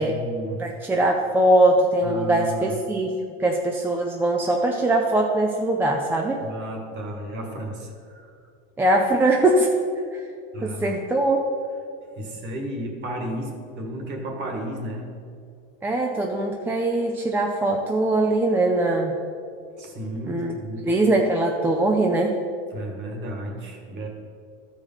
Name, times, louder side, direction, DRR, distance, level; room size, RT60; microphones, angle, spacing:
voice 1, 0.0-0.7 2.0-2.8 6.4-8.3 10.5-11.0 12.1-15.1 19.8-21.0 22.7-24.1, equal, 35° right, 2 dB, 1.8 m, -33 dB
voice 2, 0.6-3.1 3.4-6.4 8.8-9.7 10.1-10.2 10.6-11.4 15.8-19.1 20.3-20.6 20.8-22.4, right 2 dB, 5° right, 1 dB, 0.4 m, -21 dB
13.5 x 5.0 x 5.6 m, 2.3 s
supercardioid pair, 150°, 31 cm